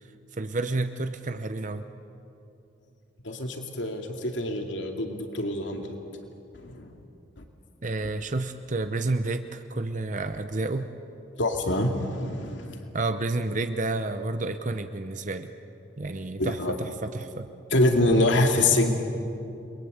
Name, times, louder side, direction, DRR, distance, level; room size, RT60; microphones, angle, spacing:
voice 1, 0.3-1.9 7.8-10.9 12.9-15.5 16.0-17.5, right 2 dB, 40° right, 9 dB, 0.8 m, -30 dB
voice 2, 3.2-6.0 6.6-6.9 11.4-12.8 16.4-16.7 17.7-18.9, left 1 dB, 80° left, 4 dB, 2.4 m, -25 dB
29.5 x 22.0 x 8.1 m, 2.8 s
head